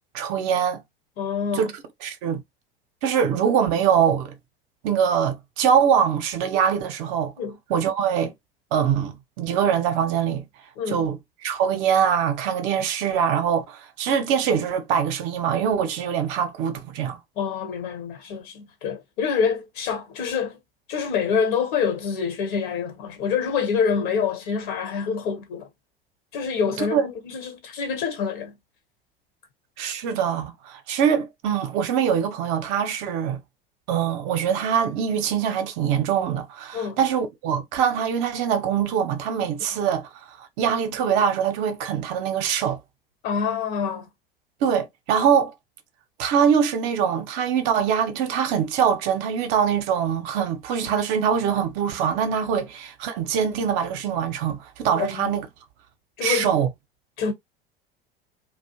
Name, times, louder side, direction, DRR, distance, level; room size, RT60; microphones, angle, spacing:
voice 1, 0.1-0.8 1.5-1.7 2.0-2.4 3.0-4.3 4.8-7.3 7.7-8.3 8.7-10.5 10.9-11.2 11.4-17.2 26.8-27.0 29.8-33.4 33.9-42.8 44.6-45.5 46.2-55.5 56.2-56.7, right 8 dB, 55° right, 0.7 m, -23 dB
voice 2, 1.2-1.7 7.4-7.6 10.8-11.1 17.4-20.6 20.9-25.7 26.3-28.6 36.7-37.0 43.2-44.1 54.9-55.3 56.2-56.5 57.2-57.3, left 6 dB, 55° left, 1.1 m, -26 dB
2.4 x 2.1 x 2.8 m
figure-of-eight pair, 75°, 30 cm